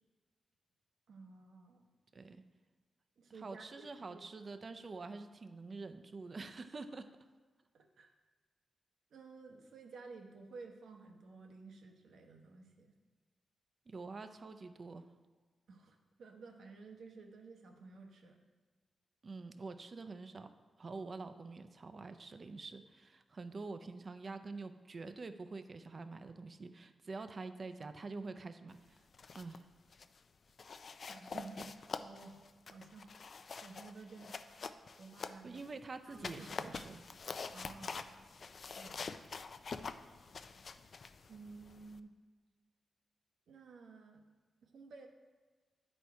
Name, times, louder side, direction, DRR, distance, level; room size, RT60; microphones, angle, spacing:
voice 1, 1.1-1.9 3.2-4.2 7.7-8.1 9.1-12.9 15.7-18.4 31.1-33.1 33.6-34.4 35.0-35.6 36.1-36.9 37.5-38.2 38.7-39.2 41.3-42.1 43.5-44.2 44.6-45.1, right 4 dB, 80° right, 3 dB, 0.9 m, -53 dB
voice 2, 2.1-2.4 3.3-7.1 13.9-15.1 19.2-20.5 20.8-29.0 29.3-29.7 35.4-37.0, right 3 dB, 40° right, 9 dB, 0.5 m, -46 dB
sound 1, 29.0-29.6 29.9-30.2 30.6-35.7 36.1-42.0, left 5 dB, 50° left, 0.3 m, -46 dB
9.9 x 4.4 x 4.6 m, 1.4 s
wide cardioid pair, 110°, 0 cm